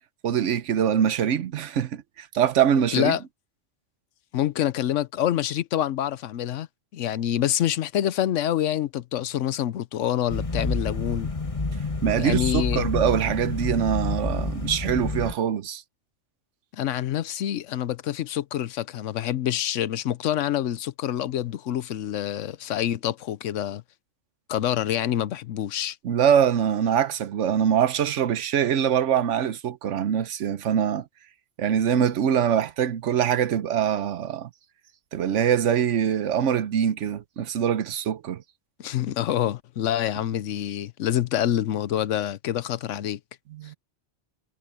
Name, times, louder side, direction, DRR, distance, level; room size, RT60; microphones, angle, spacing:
voice 1, 0.2-3.2 12.0-15.8 26.0-31.1 31.6-34.5 35.1-38.4 43.5-43.8, right 8 dB, 80° right, 1.1 m, -23 dB
voice 2, 4.3-6.7 6.9-11.3 12.2-12.9 16.8-23.8 24.5-26.0 38.8-43.2, left 11 dB, 85° left, 1.0 m, -26 dB
sound 1, 10.3-15.3, left 2 dB, 25° left, 1.9 m, -29 dB
omnidirectional pair, 1.2 m